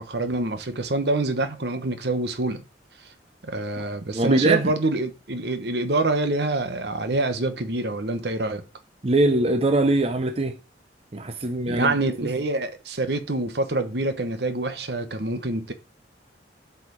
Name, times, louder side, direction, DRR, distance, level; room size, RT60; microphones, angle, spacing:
voice 1, 0.0-2.6 3.4-8.6 11.7-15.7, right 2 dB, 65° right, 1.1 m, -26 dB
voice 2, 4.1-4.7 9.0-10.6 11.1-11.9, right 2 dB, 35° right, 0.6 m, -22 dB
8.5 x 4.9 x 4.8 m
head